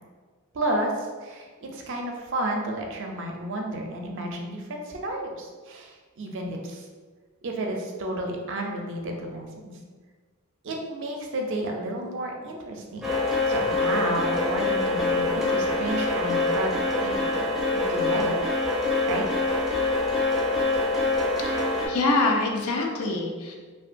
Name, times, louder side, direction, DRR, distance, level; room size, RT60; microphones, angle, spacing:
voice 1, 0.5-6.9 7.4-9.7 10.6-13.0 13.5-17.4 17.7-18.3 19.1-19.2, right 1 dB, 60° right, 1 dB, 0.5 m, -31 dB
sound 1, 13.0-21.9, left 2 dB, ahead, 0.5 m, -25 dB
voice 2, 21.9-23.5, left 2 dB, 85° left, 1 dB, 0.5 m, -24 dB
2.8 x 2.3 x 2.5 m, 1.5 s
head